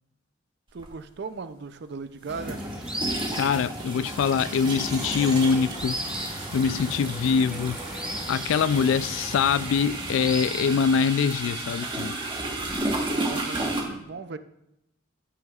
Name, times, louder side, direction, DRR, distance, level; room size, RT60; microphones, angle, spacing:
voice 1, 0.7-2.6 13.0-14.4, right 4 dB, 60° right, 0.5 m, -37 dB
sound 1, 0.8-0.9 2.3-13.8, right 2 dB, 25° right, 1.2 m, -33 dB
sound 2, 2.3-11.1, equal, 5° right, 1.0 m, -37 dB
voice 2, 3.3-12.1, left 6 dB, 75° left, 0.3 m, -24 dB
Squeak, 5.0-9.4, equal, 25° left, 2.3 m, -43 dB
14.5 x 6.0 x 2.4 m
head